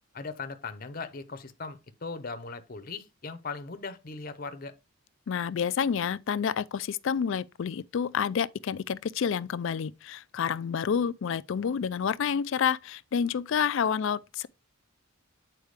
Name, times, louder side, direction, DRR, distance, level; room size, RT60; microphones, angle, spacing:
voice 1, 0.1-4.7, left 4 dB, 40° left, 0.7 m, -39 dB
voice 2, 5.3-14.5, left 7 dB, 60° left, 0.3 m, -29 dB
8.0 x 4.5 x 3.3 m
head